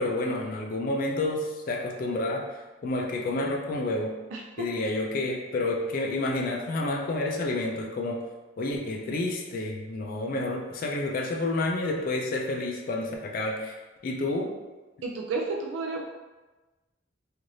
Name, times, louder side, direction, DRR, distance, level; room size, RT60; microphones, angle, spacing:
voice 1, 0.0-4.1 4.6-8.2 8.6-13.8 14.0-14.5, left 2 dB, 45° left, 0 dB, 0.3 m, -29 dB
voice 2, 4.3-4.8 15.0-16.0, right 3 dB, 70° right, 0 dB, 0.3 m, -32 dB
3.1 x 2.4 x 2.6 m, 1.2 s
head